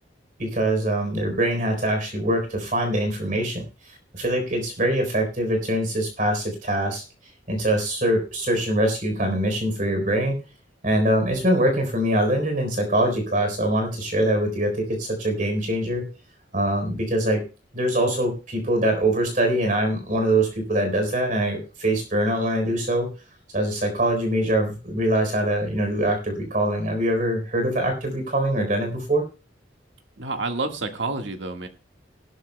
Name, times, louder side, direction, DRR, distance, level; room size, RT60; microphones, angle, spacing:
voice 1, 0.4-3.6 4.1-7.0 7.5-10.4 10.8-16.0 16.5-17.4 17.7-23.1 23.5-29.2, right 1 dB, 45° right, 4 dB, 3.9 m, -23 dB
voice 2, 30.2-31.7, right 3 dB, 75° right, 5 dB, 1.7 m, -29 dB
18.5 x 12.0 x 2.2 m, 0.33 s
head